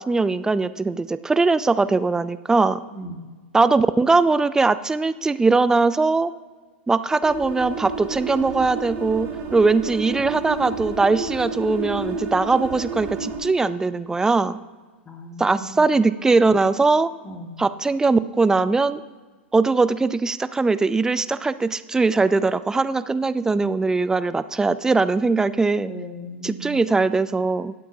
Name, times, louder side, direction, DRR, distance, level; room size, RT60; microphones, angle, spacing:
voice 1, 0.0-2.8 3.5-6.3 6.9-14.6 15.4-17.1 17.6-19.0 19.5-25.9 26.4-27.7, right 3 dB, 10° right, 14 dB, 0.4 m, -20 dB
voice 2, 2.9-3.3 15.1-15.8 17.2-17.6 25.8-26.8, equal, 20° left, 4 dB, 1.9 m, -37 dB
sound 1, 7.2-13.4, right 4 dB, 35° right, 3.1 m, -31 dB
20.0 x 8.4 x 2.8 m, 1.4 s
hypercardioid pair, 100°, 7 cm